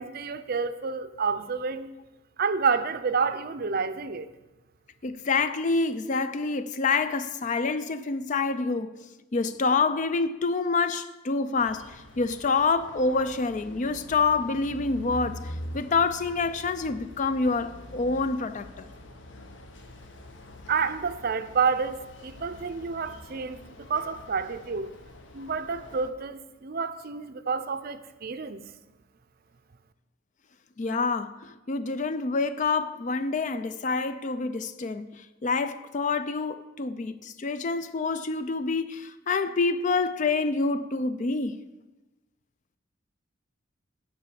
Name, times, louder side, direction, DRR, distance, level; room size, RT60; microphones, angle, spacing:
voice 1, 0.0-1.9 2.4-4.3 20.7-23.6 23.9-25.0 25.3-28.6, right 5 dB, 50° right, 0.5 m, -29 dB
voice 2, 5.0-8.9 9.3-18.9 30.8-41.6, left 4 dB, 40° left, 0.4 m, -27 dB
sound 1, 11.5-26.1, left 1 dB, 60° left, 0.9 m, -45 dB
9.7 x 5.7 x 6.8 m
head